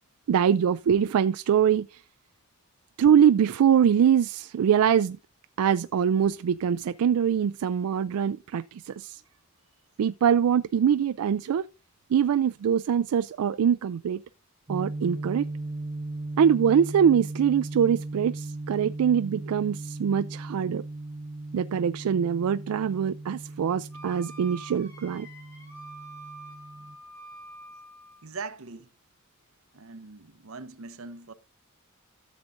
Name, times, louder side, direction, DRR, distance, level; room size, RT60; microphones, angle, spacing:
voice 1, 0.3-2.0 3.0-5.2 5.6-9.2 10.0-11.7 12.1-14.2 14.7-15.5 16.4-20.8 21.5-25.3, right 8 dB, 85° right, 0.3 m, -23 dB
sound 1, 14.7-27.0, right 2 dB, 25° right, 0.4 m, -37 dB
Wind instrument woodwind instrument, 23.9-28.3, right 1 dB, 15° left, 3.3 m, -46 dB
voice 2, 28.2-28.9 29.7-31.3, right 4 dB, 70° right, 0.8 m, -41 dB
13.5 x 7.4 x 2.5 m
head